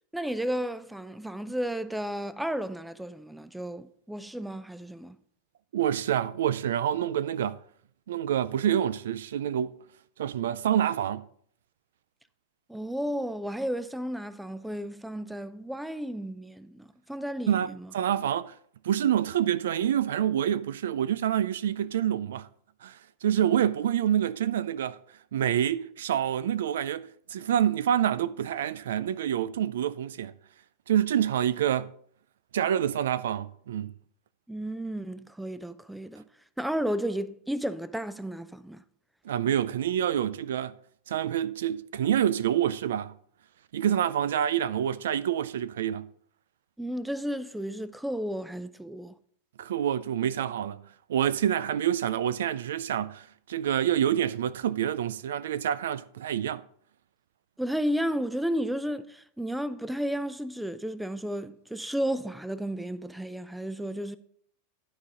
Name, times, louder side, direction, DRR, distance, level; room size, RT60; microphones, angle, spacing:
voice 1, 0.1-5.2 12.7-17.9 34.5-36.2 36.6-38.8 46.8-49.1 57.6-64.2, equal, 5° right, 0.5 m, -33 dB
voice 2, 5.7-7.6 8.1-9.8 10.2-11.2 17.5-18.5 18.8-22.5 22.8-25.0 25.3-30.3 30.9-31.9 32.5-33.9 39.3-40.8 41.1-43.1 43.7-46.1 49.6-50.8 51.1-56.6, right 10 dB, 85° right, 0.4 m, -27 dB
12.0 x 4.1 x 4.9 m
hypercardioid pair, 120°, 0 cm